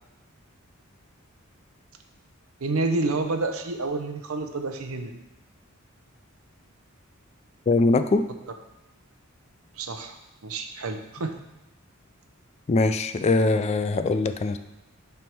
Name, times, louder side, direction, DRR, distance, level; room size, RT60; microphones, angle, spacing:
voice 1, 2.6-5.2 9.8-10.2 10.4-11.4, right 3 dB, 90° right, 6 dB, 0.7 m, -29 dB
voice 2, 7.7-8.2 12.7-14.6, left 3 dB, 30° left, 10 dB, 0.3 m, -22 dB
8.9 x 3.5 x 4.6 m, 0.92 s
head